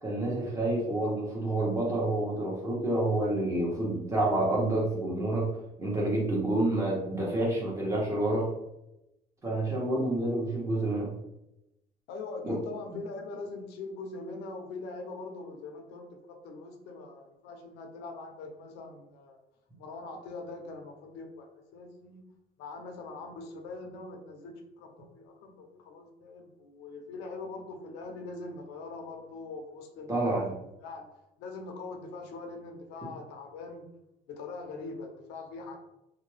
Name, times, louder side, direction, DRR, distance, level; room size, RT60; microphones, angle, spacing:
voice 1, 0.0-5.5 5.8-8.5 9.4-11.1 12.4-12.6 30.1-30.5, right 1 dB, 15° right, -4 dB, 1.1 m, -28 dB
voice 2, 12.1-19.4 19.8-22.3 22.6-30.4 30.8-31.1 31.4-33.9 34.3-35.8, left 3 dB, 90° left, 3 dB, 0.6 m, -42 dB
2.6 x 2.2 x 3.2 m, 0.88 s
cardioid pair, 110°, 17 cm